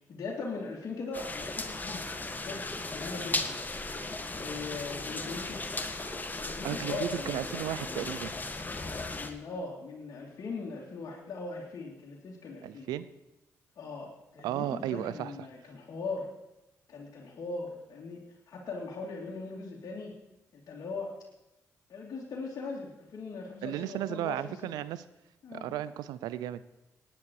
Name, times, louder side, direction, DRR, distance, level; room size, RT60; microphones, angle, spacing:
voice 1, 0.1-3.5 4.3-5.7 6.3-12.9 13.8-16.3 16.9-20.1 20.5-21.1 21.9-24.7 25.4-25.7, left 3 dB, 60° left, -5 dB, 3.0 m, -40 dB
sound 1, 1.1-9.3, left 2 dB, 25° left, 1.8 m, -36 dB
voice 2, 6.6-8.3 12.6-13.1 14.4-15.3 23.6-25.0 25.5-26.6, right 12 dB, 80° right, 16 dB, 0.7 m, -34 dB
18.0 x 10.5 x 4.9 m, 0.95 s
supercardioid pair, 50°, 7 cm